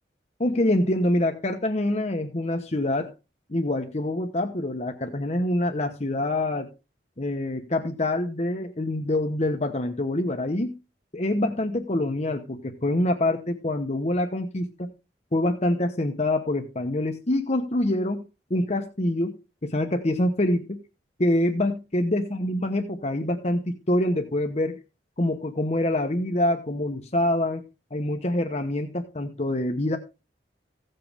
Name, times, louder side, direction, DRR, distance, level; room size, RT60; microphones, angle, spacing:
voice 1, 0.4-3.1 3.5-6.7 7.2-10.8 11.1-14.9 15.3-18.2 18.5-19.3 19.6-20.8 21.2-24.8 25.2-27.6 27.9-30.0, left 1 dB, 40° left, 4 dB, 1.0 m, -25 dB
16.0 x 7.7 x 3.5 m, 0.30 s
head